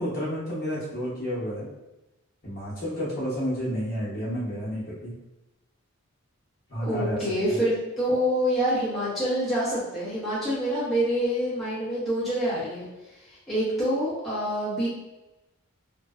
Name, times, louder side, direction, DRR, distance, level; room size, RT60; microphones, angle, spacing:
voice 1, 0.0-1.7 2.4-5.1 6.7-7.6, equal, 45° left, -8 dB, 0.9 m, -31 dB
voice 2, 6.8-12.9 13.5-14.9, equal, ahead, -12 dB, 0.8 m, -26 dB
2.5 x 2.1 x 2.4 m, 0.98 s
head